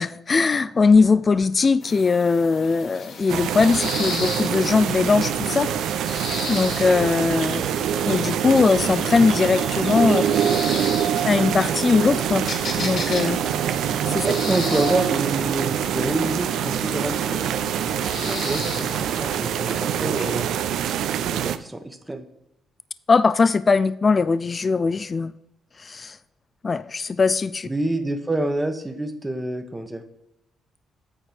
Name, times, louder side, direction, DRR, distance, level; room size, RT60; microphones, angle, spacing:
voice 1, 0.0-5.7 6.0-7.7 8.0-10.2 11.2-12.5 12.8-13.4 14.1-14.2 18.3-18.4 23.1-25.3 25.8-26.2 26.6-27.7, left 4 dB, 35° left, 0.3 m, -20 dB
sound 1, 1.8-20.5, left 4 dB, 65° left, 1.7 m, -36 dB
sound 2, 3.3-21.6, right 9 dB, 80° right, 0.5 m, -25 dB
voice 2, 14.2-17.4 18.2-20.5 21.2-22.3 27.6-30.0, right 1 dB, 15° right, 1.1 m, -27 dB
8.9 x 4.4 x 5.1 m
cardioid pair, 90°, 0 cm